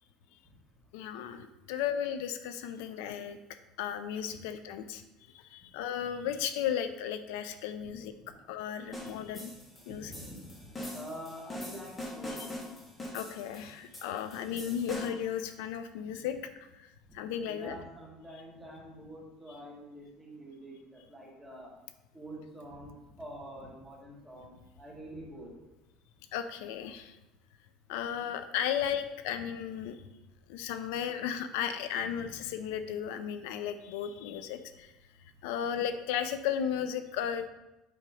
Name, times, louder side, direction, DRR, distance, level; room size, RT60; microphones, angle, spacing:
voice 1, 0.9-3.4 3.8-5.0 5.3-8.1 8.5-9.5 9.9-10.1 12.4-12.5 13.1-16.4 16.7-16.9 17.1-17.8 19.5-19.6 26.3-27.2 27.9-30.0 30.5-34.9 35.4-37.5, left 9 dB, 85° left, 10 dB, 0.5 m, -35 dB
sound 1, 8.9-15.3, left 1 dB, 15° left, 1.2 m, -43 dB
voice 2, 9.9-10.7 10.9-12.4 17.5-21.7 22.1-24.5 24.8-25.5 32.1-32.3, right 1 dB, 5° right, -4 dB, 1.4 m, -46 dB
7.8 x 2.9 x 4.9 m, 0.98 s
cardioid pair, 170°, 0 cm